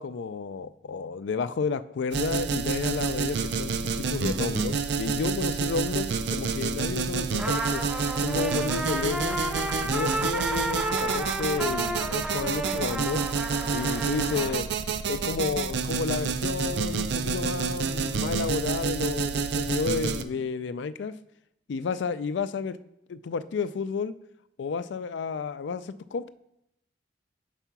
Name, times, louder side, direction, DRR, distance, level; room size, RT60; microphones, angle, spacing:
voice 1, 0.0-7.8 8.2-9.4 9.8-13.2 13.7-14.7 15.1-21.1 21.7-22.8 23.1-24.1 24.6-26.3, left 5 dB, 80° left, 14 dB, 0.4 m, -31 dB
sound 1, 2.1-20.2, right 5 dB, 70° right, 0.4 m, -29 dB
Trumpet, 7.4-14.6, right 2 dB, 5° right, 0.5 m, -32 dB
4.9 x 4.5 x 5.8 m, 0.82 s
head